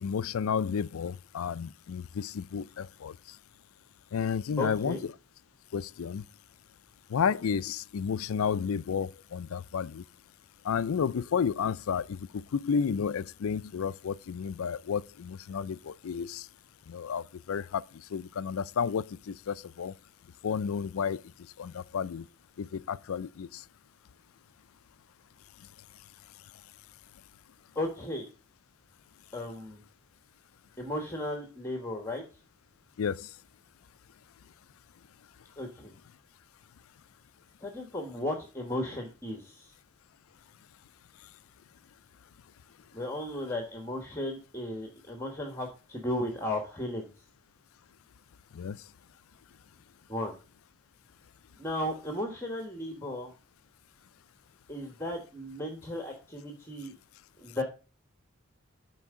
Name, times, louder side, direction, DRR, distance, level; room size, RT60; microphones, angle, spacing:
voice 1, 0.0-3.1 4.1-5.1 5.7-6.2 7.1-10.0 10.6-16.5 16.9-17.8 18.1-19.9 20.4-21.2 21.6-22.3 22.6-23.6 33.0-33.3 48.5-48.8, left 6 dB, 75° left, 0.4 m, -31 dB
voice 2, 4.6-5.0 27.7-28.3 29.3-29.8 30.8-32.2 35.6-35.9 37.6-39.7 42.9-47.1 50.1-50.3 51.6-53.3 54.7-56.9 57.4-57.6, left 1 dB, 10° left, 1.3 m, -35 dB
12.0 x 4.6 x 3.6 m
head